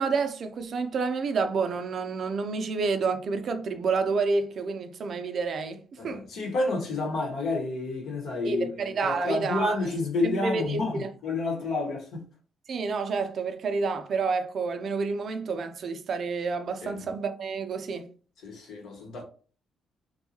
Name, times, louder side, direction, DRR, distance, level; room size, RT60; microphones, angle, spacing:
voice 1, 0.0-6.2 8.4-9.8 10.2-11.1 12.7-18.1, right 4 dB, 60° right, 0.4 m, -29 dB
voice 2, 6.0-12.2 16.8-17.1 18.4-19.2, left 2 dB, 70° left, 1.1 m, -30 dB
2.7 x 2.3 x 2.8 m
cardioid pair, 75°, 0 cm